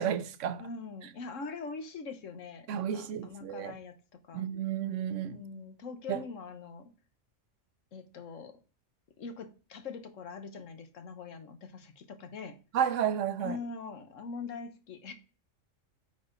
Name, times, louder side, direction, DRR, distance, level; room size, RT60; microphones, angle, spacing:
voice 1, 0.0-0.7 2.7-3.7 4.3-5.4 6.1-6.2 12.7-13.6, right 9 dB, 75° right, 1.0 m, -32 dB
voice 2, 0.6-4.4 5.3-6.9 7.9-8.6 9.2-12.6 13.4-15.1, left 4 dB, 80° left, 1.4 m, -43 dB
8.9 x 4.2 x 3.9 m
omnidirectional pair, 1.3 m